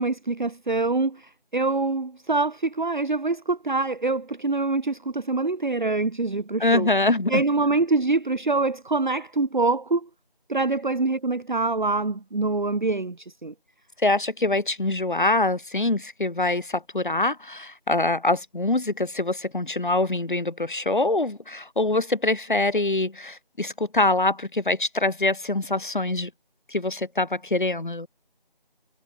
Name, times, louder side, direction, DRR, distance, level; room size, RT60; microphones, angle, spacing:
voice 1, 0.0-6.9 7.3-10.1 10.5-13.5, right 3 dB, 55° right, 0.9 m, -25 dB
voice 2, 6.6-7.4 14.0-26.3 26.7-28.1, left 2 dB, 55° left, 2.4 m, -24 dB
figure-of-eight pair, 170°, 29 cm